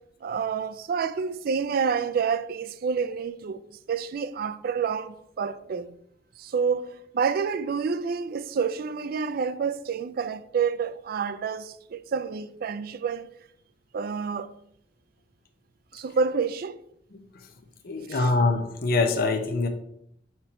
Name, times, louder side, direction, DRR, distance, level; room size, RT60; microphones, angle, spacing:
voice 1, 0.2-6.0 6.4-13.3 13.9-14.5 15.9-16.8 18.1-18.3, right 6 dB, 55° right, 0.4 m, -28 dB
voice 2, 17.8-19.7, left 3 dB, 55° left, 0.6 m, -24 dB
4.4 x 4.3 x 5.1 m
head